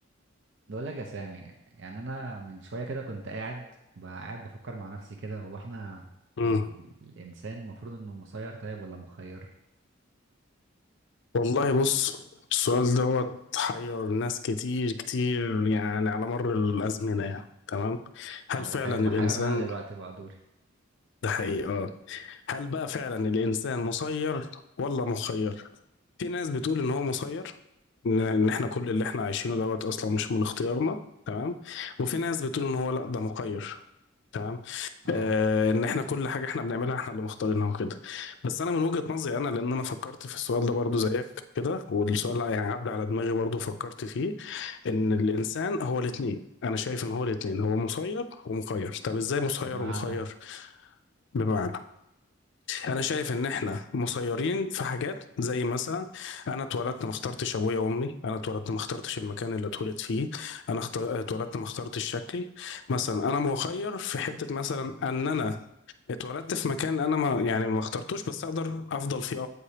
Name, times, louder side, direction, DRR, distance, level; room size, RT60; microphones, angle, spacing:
voice 1, 0.7-3.6 4.0-6.1 6.4-6.7 7.0-9.5 18.6-20.4 35.0-35.3 49.7-50.2, right 3 dB, 65° right, 0.6 m, -38 dB
voice 2, 6.4-6.7 11.3-19.7 21.2-25.7 26.2-27.5 28.0-31.0 31.3-33.8 34.3-41.3 41.6-50.7 51.3-51.8 52.7-65.6 66.1-69.5, left 4 dB, 60° left, 0.4 m, -29 dB
8.1 x 4.9 x 2.8 m
head